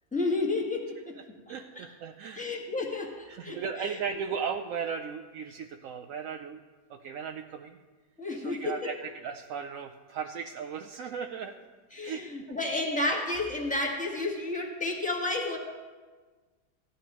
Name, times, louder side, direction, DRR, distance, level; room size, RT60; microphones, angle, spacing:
voice 1, 0.1-1.2 1.5-1.8 2.3-4.0 8.2-8.9 11.9-15.6, left 2 dB, 5° left, -1 dB, 1.3 m, -31 dB
voice 2, 1.5-2.5 3.3-6.6 6.9-7.8 8.4-11.5 12.0-12.2, right 6 dB, 70° right, 4 dB, 0.8 m, -36 dB
16.0 x 11.0 x 3.0 m, 1.4 s
omnidirectional pair, 1.8 m